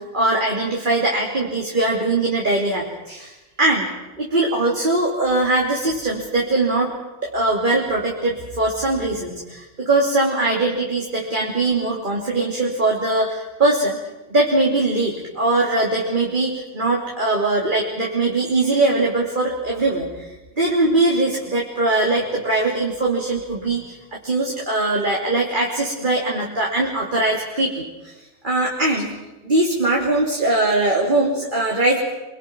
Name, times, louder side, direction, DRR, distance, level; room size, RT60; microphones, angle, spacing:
voice 1, 0.0-3.9 4.2-6.9 7.2-14.0 14.3-28.1 28.4-29.1 29.4-32.0, right 2 dB, 45° right, -2 dB, 3.3 m, -21 dB
25.5 x 23.5 x 6.2 m, 1.1 s
omnidirectional pair, 1.1 m